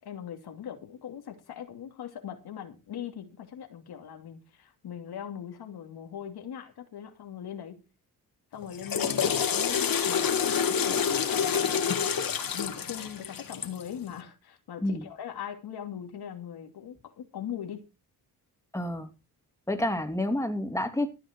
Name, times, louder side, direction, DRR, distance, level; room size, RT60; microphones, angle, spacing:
voice 1, 0.0-7.8 8.5-12.1 12.5-17.8, left 9 dB, 80° left, 2.8 m, -40 dB
Water / Toilet flush, 8.6-13.9, left 7 dB, 65° left, 2.9 m, -27 dB
voice 2, 18.7-19.1 19.7-21.1, left 1 dB, 10° left, 2.9 m, -29 dB
14.5 x 9.2 x 4.6 m
cardioid pair, 80°, 38 cm